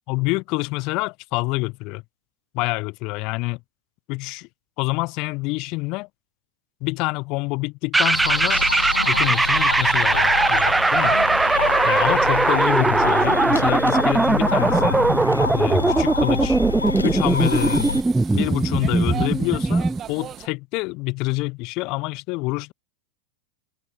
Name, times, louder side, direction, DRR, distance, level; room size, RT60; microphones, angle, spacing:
voice 1, 0.1-2.0 2.5-3.6 4.1-4.5 4.8-6.1 6.8-8.6 9.0-11.2 11.8-15.0 15.5-16.6 17.0-18.0 18.3-22.7, left 25 dB, 40° left, 0.6 m, -27 dB
sound 1, 7.9-20.0, right 2 dB, 10° right, 0.3 m, -20 dB
sound 2, 8.1-18.0, left 4 dB, 80° left, 1.5 m, -28 dB
sound 3, 13.8-20.5, right 10 dB, 25° right, 1.3 m, -40 dB
figure-of-eight pair, 90°, 0 cm